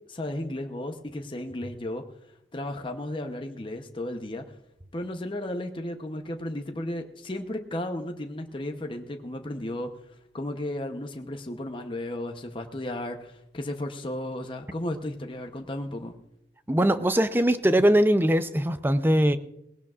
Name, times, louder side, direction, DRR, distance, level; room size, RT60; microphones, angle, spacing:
voice 1, 0.1-2.0 2.5-4.4 4.9-9.9 10.3-16.2, left 1 dB, 30° left, 0.8 m, -34 dB
voice 2, 16.7-19.4, right 1 dB, 10° right, 0.5 m, -21 dB
19.5 x 16.5 x 2.4 m
head